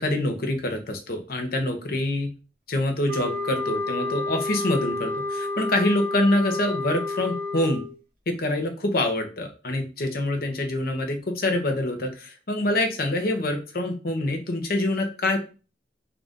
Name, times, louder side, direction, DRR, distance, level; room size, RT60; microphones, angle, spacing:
voice 1, 0.0-2.3 2.7-7.8 8.3-15.4, left 1 dB, 55° left, 4 dB, 0.8 m, -25 dB
sound 1, 3.1-8.0, left 2 dB, 55° right, 0.9 m, -30 dB
3.8 x 2.5 x 3.5 m, 0.35 s
head